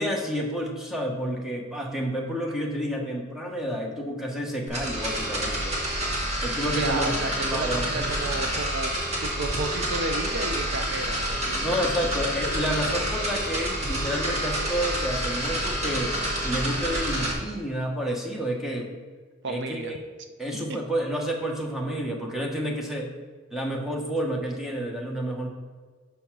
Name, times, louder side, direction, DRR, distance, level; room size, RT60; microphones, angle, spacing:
voice 1, 0.0-5.7 6.4-7.1 7.5-8.1 11.5-16.1 16.4-18.9 19.5-20.0 20.4-23.1 23.5-25.5, equal, ahead, -1 dB, 1.1 m, -30 dB
sound 1, 4.7-17.3, right 1 dB, 35° right, 1.8 m, -28 dB
voice 2, 6.8-11.8 19.4-19.9 20.5-20.8, right 2 dB, 60° right, 7 dB, 0.5 m, -32 dB
5.7 x 5.4 x 6.0 m, 1.5 s
head